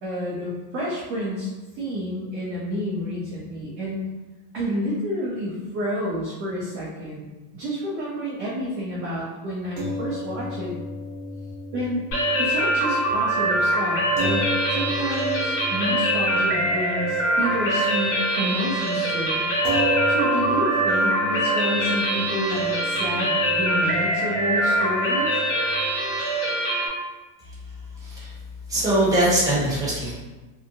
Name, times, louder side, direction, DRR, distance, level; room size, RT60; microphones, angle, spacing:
voice 1, 0.0-4.0 4.5-10.7 11.7-12.0 12.4-19.5 20.1-25.4, equal, 30° right, -7 dB, 0.4 m, -29 dB
sound 1, 9.8-18.3 18.6-18.8 19.6-26.2, right 1 dB, 75° right, 0.7 m, -33 dB
sound 2, 12.1-26.9, right 1 dB, 70° left, 1.2 m, -23 dB
voice 2, 28.0-28.3 28.7-30.1, right 1 dB, 5° right, -8 dB, 0.8 m, -22 dB
2.7 x 2.2 x 2.5 m, 1.2 s
supercardioid pair, 130°, 49 cm